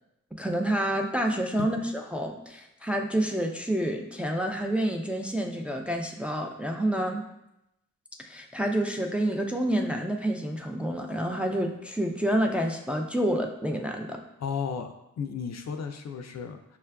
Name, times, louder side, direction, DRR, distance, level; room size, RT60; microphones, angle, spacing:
voice 1, 0.4-7.2 8.2-14.2, right 1 dB, 5° right, 2 dB, 0.4 m, -28 dB
voice 2, 14.4-16.8, left 6 dB, 55° left, 6 dB, 0.4 m, -34 dB
5.5 x 2.3 x 2.2 m, 0.85 s
cardioid pair, 50°, 31 cm